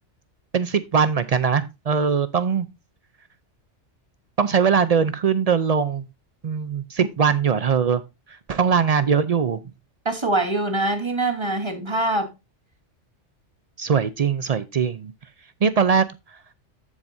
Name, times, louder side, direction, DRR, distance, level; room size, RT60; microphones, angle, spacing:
voice 1, 0.5-2.7 4.4-6.1 6.4-8.0 8.5-9.6 13.8-15.1 15.6-16.0, right 6 dB, 55° right, 0.4 m, -21 dB
voice 2, 10.0-12.3, right 2 dB, 25° right, 1.3 m, -23 dB
14.5 x 4.9 x 2.6 m
omnidirectional pair, 1.2 m